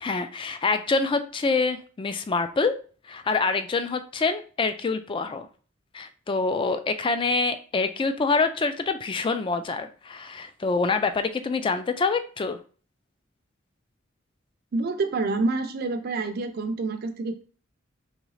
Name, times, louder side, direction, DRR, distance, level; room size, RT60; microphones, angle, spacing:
voice 1, 0.0-2.7 3.1-5.5 5.9-12.6, left 4 dB, 25° left, 9 dB, 0.3 m, -26 dB
voice 2, 14.7-17.4, right 3 dB, 50° right, 7 dB, 0.4 m, -27 dB
3.7 x 3.1 x 3.2 m, 0.40 s
head